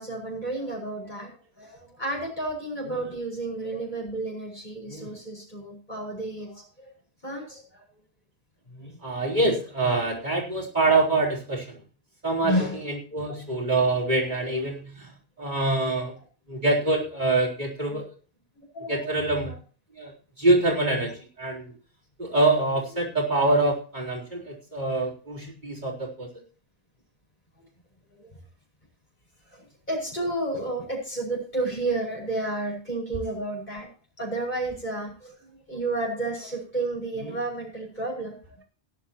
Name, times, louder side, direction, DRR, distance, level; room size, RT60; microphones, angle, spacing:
voice 1, 0.0-6.9 7.2-7.8 8.7-9.0 12.4-12.8 13.1-13.4 14.0-14.5 15.9-16.1 17.9-18.1 18.7-19.2 22.9-23.1 28.1-28.3 29.5-33.9 34.2-38.6, right 2 dB, 45° left, -3 dB, 5.2 m, -32 dB
voice 2, 9.0-11.8 12.2-15.1 15.4-16.1 16.5-18.0 18.9-19.5 20.0-20.1 20.4-21.1 21.4-21.7 22.2-26.3, right 2 dB, 45° right, -3 dB, 4.3 m, -25 dB
18.5 x 10.5 x 3.0 m, 0.39 s
omnidirectional pair, 1.1 m